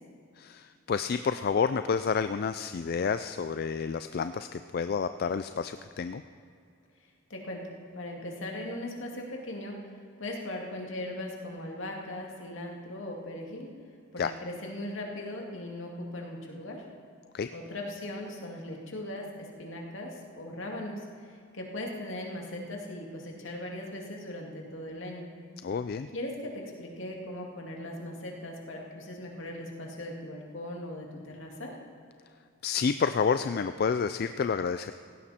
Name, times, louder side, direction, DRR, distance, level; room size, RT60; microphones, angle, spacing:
voice 1, 0.4-6.2 14.2-14.3 17.3-17.5 25.6-26.1 32.6-34.9, left 6 dB, 50° left, 10 dB, 0.3 m, -29 dB
voice 2, 7.3-7.6 7.9-9.8 10.2-13.7 14.1-16.9 17.5-25.3 26.1-31.8, left 1 dB, 70° left, 0 dB, 2.4 m, -39 dB
17.5 x 16.0 x 4.3 m, 2.4 s
head